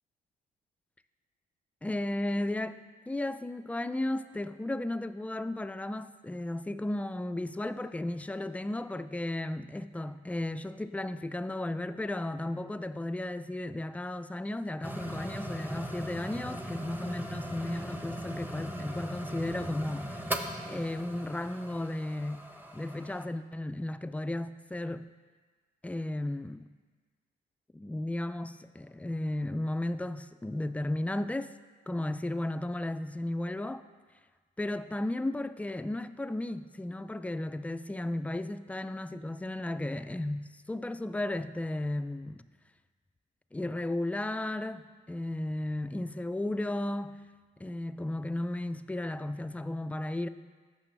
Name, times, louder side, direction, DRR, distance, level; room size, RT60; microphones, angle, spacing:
voice 1, 1.8-2.8 3.1-20.2 20.7-22.4 22.7-25.0 25.8-26.7 27.7-31.5 31.9-33.8 34.6-42.4 43.5-47.2 47.6-50.3, left 1 dB, 5° left, 0.3 m, -34 dB
sound 1, 14.8-23.2, right 1 dB, 10° right, 0.7 m, -39 dB
14.5 x 6.0 x 3.2 m
cardioid pair, 90°, 20 cm